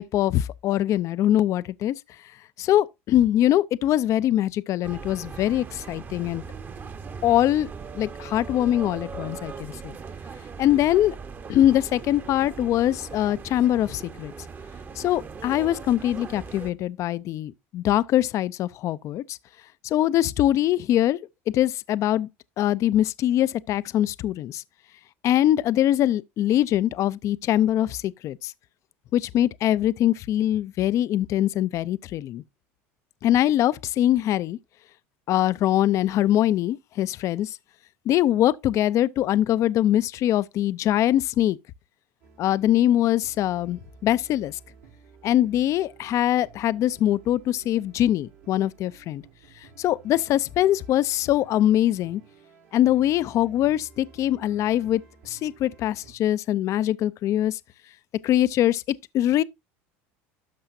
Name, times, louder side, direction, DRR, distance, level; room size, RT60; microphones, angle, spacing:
voice 1, 0.0-1.9 2.6-6.4 7.2-7.7 7.9-10.0 10.6-11.2 11.5-14.3 15.0-19.4 19.8-21.2 21.5-22.3 22.6-24.6 25.2-28.5 29.1-32.4 33.2-34.6 35.3-37.5 38.1-41.6 42.4-44.6 45.2-49.2 49.8-52.2 52.7-57.6 58.2-58.8 59.1-59.4, left 12 dB, 50° left, 0.4 m, -23 dB
sound 1, 4.8-16.7, right 5 dB, 30° right, 0.9 m, -39 dB
sound 2, 42.2-56.1, right 5 dB, 90° right, 5.4 m, -53 dB
12.5 x 5.5 x 2.6 m
supercardioid pair, 100°, 7 cm